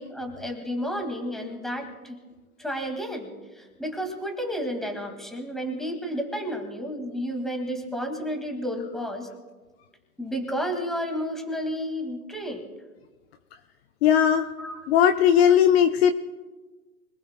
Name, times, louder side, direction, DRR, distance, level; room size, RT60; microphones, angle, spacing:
voice 1, 0.0-2.2 2.6-9.3 10.2-12.7 14.6-14.9, equal, ahead, 3 dB, 1.9 m, -31 dB
voice 2, 14.0-14.5 14.9-16.1, left 9 dB, 45° left, 6 dB, 0.8 m, -18 dB
25.5 x 19.0 x 2.2 m, 1.3 s
hypercardioid pair, 135°, 44 cm